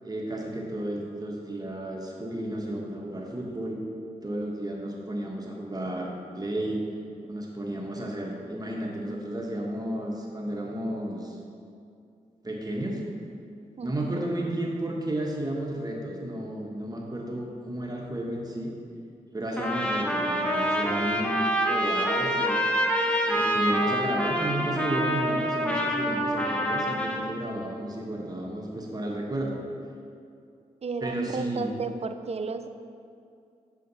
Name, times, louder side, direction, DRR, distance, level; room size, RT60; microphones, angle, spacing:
voice 1, 0.0-3.8 4.2-6.8 7.2-11.4 12.4-13.0 13.8-18.7 19.3-22.7 23.2-29.6 31.0-31.7, right 1 dB, 25° right, -1 dB, 1.2 m, -32 dB
voice 2, 13.8-14.2 30.8-32.7, right 4 dB, 45° right, 9 dB, 0.5 m, -33 dB
Trumpet, 19.6-27.3, equal, 10° left, 1.1 m, -26 dB
7.8 x 5.0 x 4.0 m, 2.4 s
supercardioid pair, 45°, 14 cm